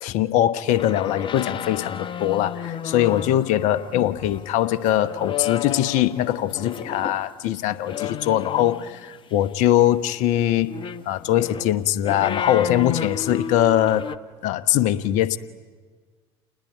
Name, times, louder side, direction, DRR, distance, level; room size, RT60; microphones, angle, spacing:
voice 1, 0.0-10.7 11.0-14.1 14.4-15.4, left 12 dB, 60° left, 1.1 m, -22 dB
sound 1, 0.7-7.2 7.8-9.1 10.6-14.2, left 8 dB, 35° left, 1.1 m, -32 dB
29.5 x 20.5 x 9.1 m
hypercardioid pair, 70°, 14 cm